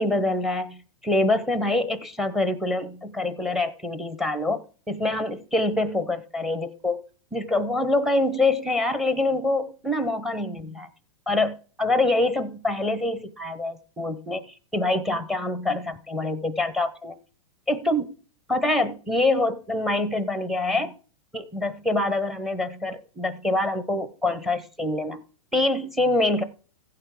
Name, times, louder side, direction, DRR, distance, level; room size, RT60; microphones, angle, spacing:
voice 1, 0.0-7.1 7.3-10.9 11.3-17.1 17.7-18.1 18.5-21.0 21.3-25.2 25.5-26.4, left 2 dB, ahead, 0.7 m, -25 dB
15.5 x 5.7 x 4.7 m
hypercardioid pair, 155°, 18 cm